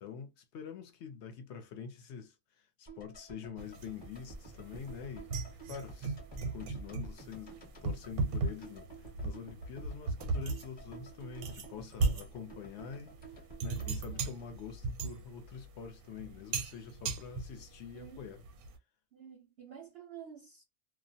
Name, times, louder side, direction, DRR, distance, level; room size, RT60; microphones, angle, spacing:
voice 1, 0.0-5.3 5.7-6.2 6.5-7.5 7.8-13.1 13.6-18.4, left 7 dB, 65° left, 0.7 m, -46 dB
sound 1, 2.9-15.1 15.3-15.4, right 3 dB, 20° left, 0.8 m, -52 dB
sound 2, 3.6-18.8, right 3 dB, 85° right, 1.0 m, -38 dB
voice 2, 13.7-14.4 17.9-18.3 19.1-20.6, right 7 dB, 60° right, 0.6 m, -50 dB
2.4 x 2.0 x 2.6 m
omnidirectional pair, 1.5 m